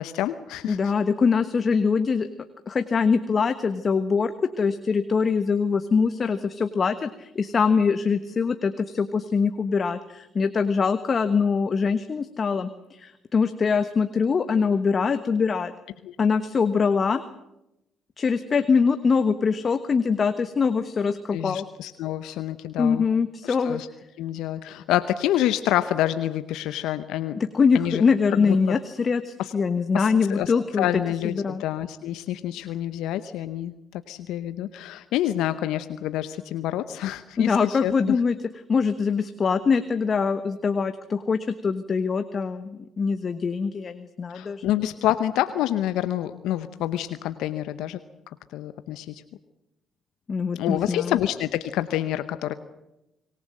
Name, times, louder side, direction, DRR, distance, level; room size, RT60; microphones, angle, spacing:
voice 1, 0.0-0.8 16.0-16.1 21.3-23.0 23.4-23.9 24.2-27.4 27.7-28.0 28.3-28.8 29.9-38.2 44.3-48.0 48.5-49.2 50.6-52.5, left 12 dB, 75° left, 12 dB, 0.8 m, -27 dB
voice 2, 0.7-2.3 2.7-15.7 16.2-17.2 18.2-21.6 22.8-23.8 27.4-31.6 37.4-38.4 38.7-44.6 50.3-51.2, left 5 dB, 45° left, 10 dB, 1.3 m, -23 dB
25.0 x 19.5 x 7.8 m, 0.89 s
hypercardioid pair, 50°, 0 cm